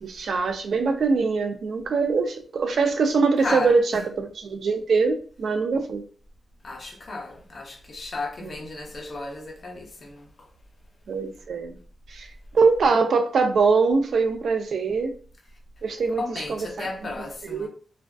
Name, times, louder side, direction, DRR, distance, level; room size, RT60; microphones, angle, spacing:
voice 1, 0.0-6.0 8.4-8.5 11.1-11.8 12.1-12.3 12.5-15.1 15.8-16.2 16.5-16.9 17.5-17.7, right 4 dB, 75° right, 0.3 m, -23 dB
voice 2, 3.4-4.0 6.6-10.5 16.1-17.7, left 2 dB, 50° left, 0.7 m, -34 dB
2.4 x 2.2 x 2.3 m
cardioid pair, 85°, 0 cm